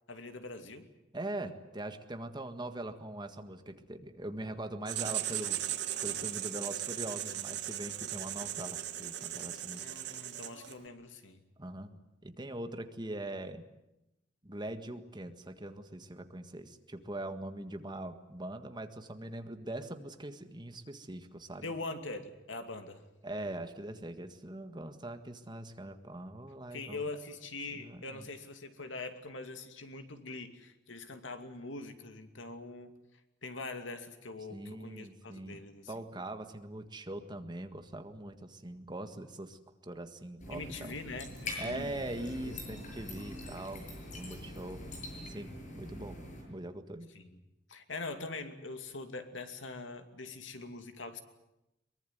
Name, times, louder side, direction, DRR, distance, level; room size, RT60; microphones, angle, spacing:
voice 1, 0.1-0.9 9.8-11.4 21.6-23.0 26.7-32.9 33.4-35.9 40.5-42.0 42.4-42.6 47.1-47.4 47.7-51.2, left 3 dB, 85° left, 7 dB, 2.6 m, -43 dB
voice 2, 1.1-5.6 6.0-9.9 11.6-13.7 14.4-21.7 23.2-27.0 27.7-28.3 34.5-35.6 35.9-41.0 41.6-44.8 45.3-46.2 46.5-47.1, right 1 dB, 25° right, 8 dB, 1.7 m, -42 dB
Writing, 4.9-10.8, right 11 dB, 65° right, 2.2 m, -37 dB
sound 1, 40.4-46.4, left 1 dB, 40° left, 8.0 m, -44 dB
23.0 x 22.5 x 9.4 m, 0.92 s
head